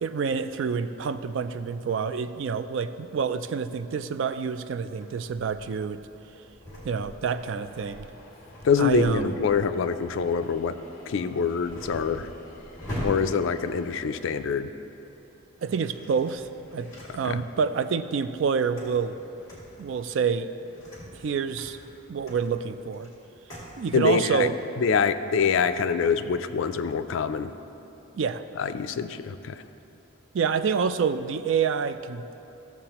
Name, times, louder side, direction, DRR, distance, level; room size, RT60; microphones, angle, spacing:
voice 1, 0.0-6.0 6.8-8.1 8.8-9.3 15.6-19.2 19.8-20.5 21.1-21.8 22.1-23.1 23.8-24.5 28.1-28.4 30.3-32.3, right 6 dB, 65° right, 12 dB, 0.3 m, -27 dB
sound 1, 5.0-14.8 15.5-17.7 18.1-23.8, equal, 15° left, 2.1 m, -43 dB
sound 2, 7.3-14.4, left 2 dB, 45° left, 1.0 m, -52 dB
voice 2, 8.6-10.8 11.1-12.3 13.0-14.7 17.2-17.4 23.9-24.5 24.8-27.5 28.6-29.6, left 6 dB, 70° left, 11 dB, 0.4 m, -25 dB
14.5 x 7.2 x 2.9 m, 2.9 s
head